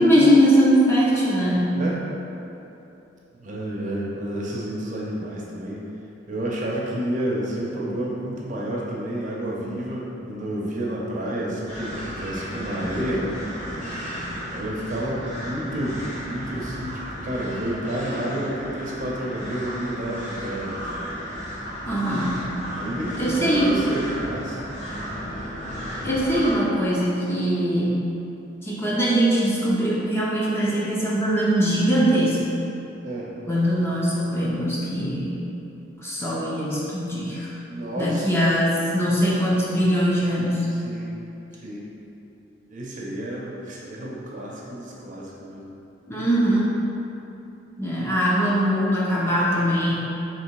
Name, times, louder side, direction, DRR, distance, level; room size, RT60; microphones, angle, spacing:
voice 1, 0.0-1.8 21.9-22.5 23.2-23.8 26.0-28.0 28.6-32.4 33.5-35.4 36.0-37.5 38.0-40.7 46.1-46.8 47.8-49.9, equal, 15° left, -7 dB, 0.5 m, -21 dB
voice 2, 3.4-5.9 6.3-13.4 14.5-21.1 22.8-24.6 33.0-33.3 37.7-38.3 40.8-41.1 41.5-41.9 42.7-45.7 48.0-48.1, right 1 dB, 40° right, -4 dB, 0.6 m, -30 dB
sound 1, 11.7-26.6, equal, 35° left, 1.4 m, -34 dB
3.4 x 3.0 x 4.6 m, 2.9 s
head